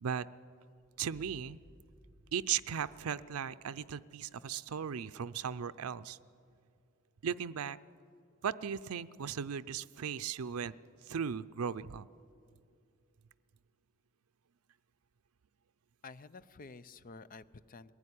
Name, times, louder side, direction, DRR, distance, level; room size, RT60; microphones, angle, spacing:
sound 1, 0.7-3.5, equal, 20° right, 2.5 m, -62 dB
voice 1, 1.0-1.6 2.3-6.2 7.2-7.8 8.4-10.7 11.1-12.1, right 7 dB, 90° right, 13 dB, 0.5 m, -37 dB
voice 2, 16.0-17.9, left 4 dB, 40° left, 15 dB, 0.6 m, -51 dB
21.5 x 15.5 x 10.0 m, 2.4 s
head